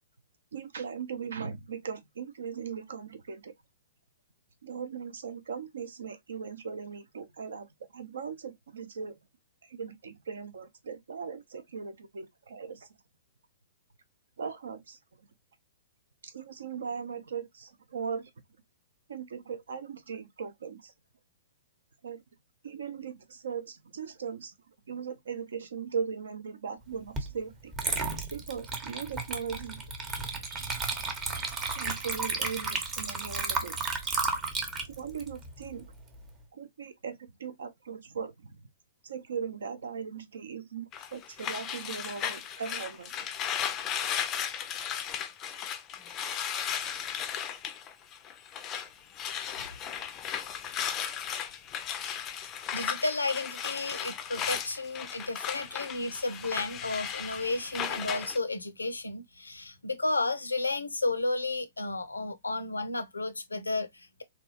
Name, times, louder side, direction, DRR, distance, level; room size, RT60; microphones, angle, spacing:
voice 1, 0.5-3.5 4.6-9.1 9.6-12.9 14.4-15.0 16.2-18.3 19.1-20.9 22.0-22.2 22.6-24.5 24.9-27.7 28.3-33.8 34.9-35.9 36.5-38.6 39.0-43.2 45.5-45.7, right 6 dB, 65° right, 0.6 m, -39 dB
Water / Liquid, 27.2-27.3 27.7-36.3, right 4 dB, 20° right, 0.7 m, -33 dB
sound 1, 40.9-48.9 49.1-58.4, left 9 dB, 25° left, 0.4 m, -35 dB
voice 2, 52.7-64.2, left 2 dB, 85° left, 0.5 m, -32 dB
3.4 x 2.3 x 2.7 m
figure-of-eight pair, 115°, 0 cm